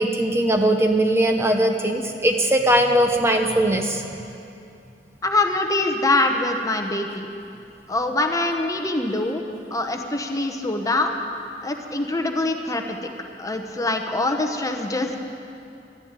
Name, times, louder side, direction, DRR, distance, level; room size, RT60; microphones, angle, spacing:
voice 1, 0.0-4.0, right 1 dB, 15° right, 3 dB, 0.8 m, -20 dB
voice 2, 5.2-7.3 7.9-9.4 9.7-11.2 11.6-13.1 13.4-15.2, left 2 dB, 20° left, 4 dB, 0.9 m, -24 dB
12.5 x 10.5 x 8.9 m, 2.6 s
head